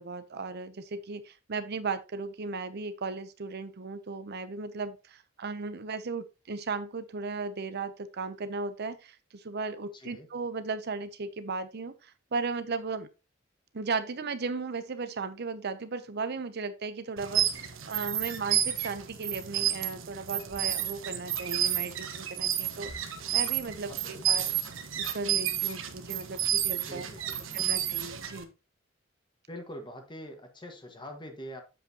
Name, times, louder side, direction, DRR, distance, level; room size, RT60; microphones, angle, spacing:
voice 1, 0.0-13.1 13.7-24.6 25.0-27.1 27.5-28.5, right 4 dB, 55° right, 12 dB, 0.7 m, -36 dB
voice 2, 9.9-10.3 23.9-24.3 26.8-27.6 29.5-31.6, equal, 25° left, 4 dB, 1.6 m, -44 dB
sound 1, 17.2-28.4, right 10 dB, 75° right, 1.3 m, -31 dB
7.8 x 7.7 x 2.9 m, 0.28 s
head